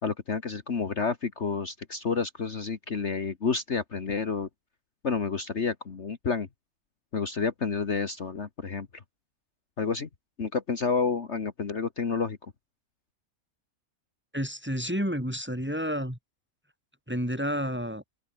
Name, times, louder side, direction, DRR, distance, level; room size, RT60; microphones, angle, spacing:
voice 1, 0.0-4.5 5.0-6.5 7.1-8.9 9.8-10.1 10.4-12.4, left 5 dB, 50° left, 1.8 m, -29 dB
voice 2, 14.3-16.2 17.1-18.0, equal, 5° right, 4.1 m, -30 dB
open air
omnidirectional pair, 1.6 m